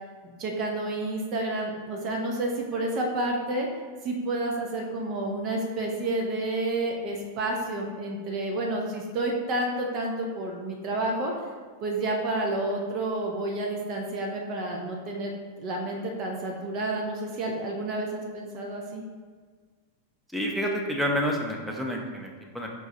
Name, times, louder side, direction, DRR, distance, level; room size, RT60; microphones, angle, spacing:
voice 1, 0.4-3.7 4.0-11.3 11.8-19.0, right 2 dB, 40° right, 0 dB, 0.6 m, -30 dB
voice 2, 20.3-22.7, equal, ahead, -1 dB, 0.7 m, -29 dB
4.6 x 2.3 x 4.2 m, 1.5 s
figure-of-eight pair, 90°, 0 cm